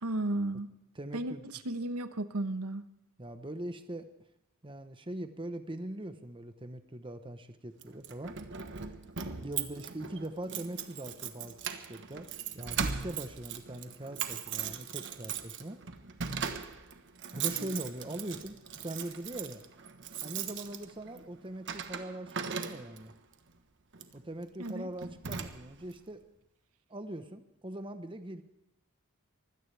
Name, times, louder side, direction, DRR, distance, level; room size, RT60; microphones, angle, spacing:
voice 1, 0.0-0.7 1.1-2.8 9.6-9.7 17.5-17.8 24.6-24.9, right 2 dB, 90° right, 10 dB, 1.1 m, -34 dB
voice 2, 1.0-1.4 3.2-4.1 4.6-8.4 9.4-12.3 12.5-15.8 17.3-19.6 20.2-23.1 24.1-26.2 26.9-28.4, right 1 dB, 25° right, 9 dB, 1.0 m, -41 dB
Keys jangling, 7.8-23.2 23.9-24.2 24.6-24.8 25.0-25.9, right 7 dB, 55° right, 1.2 m, -39 dB
24.0 x 16.5 x 3.4 m, 0.83 s
head